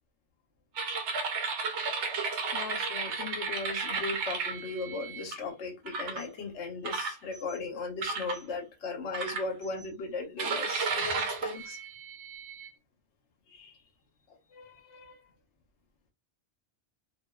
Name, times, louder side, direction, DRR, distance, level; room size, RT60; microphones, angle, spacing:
sound 1, 0.8-5.3 5.9-6.3 6.8-7.6 8.0-8.4 9.1-9.9 10.4-12.7, right 4 dB, 90° right, 1.0 m, -33 dB
voice 1, 2.5-11.8 13.5-13.8 14.5-15.2, left 3 dB, 85° left, 4 dB, 1.1 m, -38 dB
2.5 x 2.2 x 2.2 m, 0.24 s
omnidirectional pair, 1.2 m